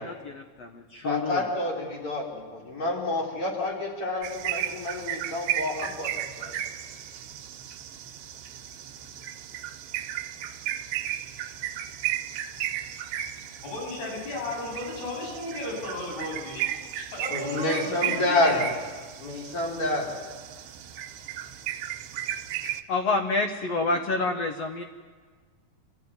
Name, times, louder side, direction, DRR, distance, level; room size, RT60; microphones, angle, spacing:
voice 1, 0.0-1.5 22.6-24.8, left 3 dB, 70° left, 5 dB, 1.5 m, -28 dB
voice 2, 1.0-6.1 6.4-6.6 17.3-18.7 19.2-20.2, left 2 dB, 35° left, -2 dB, 5.2 m, -28 dB
sound 1, 4.2-22.8, right 12 dB, 85° right, 3.1 m, -35 dB
voice 3, 13.6-18.6, left 2 dB, 90° left, -2 dB, 10.0 m, -35 dB
27.5 x 15.5 x 9.5 m, 1.5 s
omnidirectional pair, 4.6 m